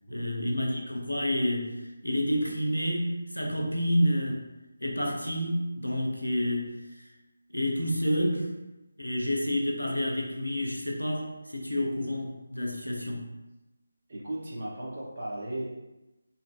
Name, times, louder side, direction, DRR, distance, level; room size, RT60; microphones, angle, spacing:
voice 1, 0.1-4.4 4.8-6.7 7.0-7.1 7.5-8.6 9.0-13.3, equal, 90° left, 1 dB, 0.5 m, -29 dB
voice 2, 14.1-15.6, right 1 dB, 40° right, -6 dB, 0.7 m, -36 dB
2.6 x 2.5 x 2.2 m, 1.0 s
figure-of-eight pair, 155°, 0 cm